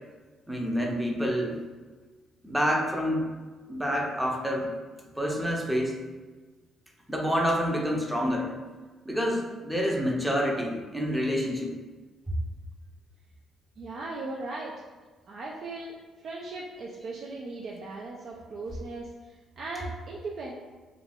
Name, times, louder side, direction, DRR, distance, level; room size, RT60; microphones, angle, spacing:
voice 1, 0.5-1.6 2.4-3.3 3.7-4.7 5.2-6.0 7.1-8.5 9.1-11.7, equal, 5° right, -1 dB, 0.5 m, -27 dB
voice 2, 13.8-14.7 15.3-16.0 16.2-20.5, right 3 dB, 60° right, -3 dB, 0.3 m, -38 dB
2.4 x 2.2 x 3.3 m, 1.3 s
cardioid pair, 90°, 0 cm